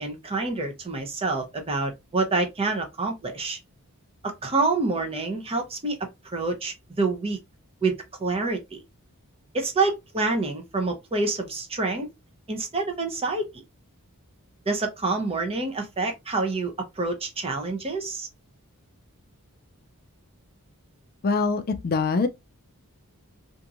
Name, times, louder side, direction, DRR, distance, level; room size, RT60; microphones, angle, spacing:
voice 1, 0.0-3.6 4.2-6.0 6.3-7.4 7.8-7.9 8.2-8.8 9.5-12.1 12.5-13.6 14.7-18.3, right 3 dB, 25° right, 0.7 m, -27 dB
voice 2, 21.2-22.3, left 4 dB, 45° left, 0.4 m, -23 dB
2.8 x 2.6 x 2.5 m
head